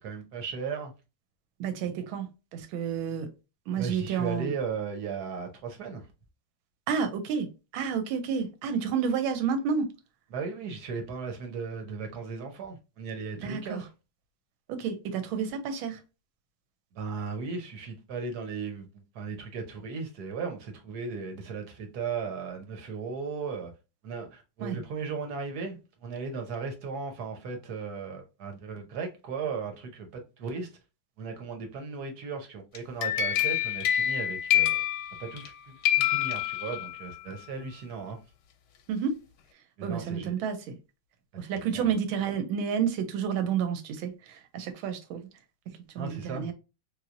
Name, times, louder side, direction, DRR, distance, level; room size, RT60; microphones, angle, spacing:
voice 1, 0.0-0.9 3.7-6.0 10.3-13.9 16.9-18.9 19.1-23.7 24.0-30.7 31.2-34.8 35.2-38.2 39.8-40.3 41.5-41.9 46.0-46.5, right 5 dB, 60° right, 1.2 m, -36 dB
voice 2, 1.6-3.3 3.7-4.5 6.9-9.9 13.4-13.8 14.7-16.0 24.6-24.8 38.9-39.2 39.8-40.8 41.4-45.3 45.9-46.5, right 7 dB, 90° right, 1.5 m, -30 dB
sound 1, 32.7-35.5 35.8-37.1, left 12 dB, 70° left, 1.0 m, -27 dB
3.1 x 3.0 x 2.5 m
omnidirectional pair, 2.2 m